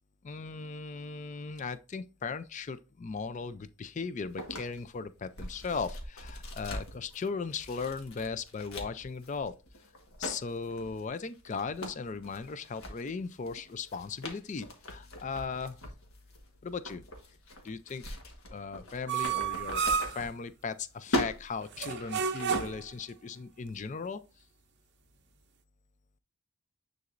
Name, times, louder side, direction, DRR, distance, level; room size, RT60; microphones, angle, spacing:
voice 1, 0.2-9.6 10.2-15.8 16.6-17.0 17.6-18.0 18.5-24.2, left 5 dB, 35° left, 0.4 m, -37 dB
sound 1, 4.4-20.8 21.0-23.0, equal, 70° left, 1.5 m, -41 dB
sound 2, 19.1-20.3 21.7-22.9, right 6 dB, 50° right, 0.6 m, -31 dB
9.5 x 4.0 x 2.5 m
head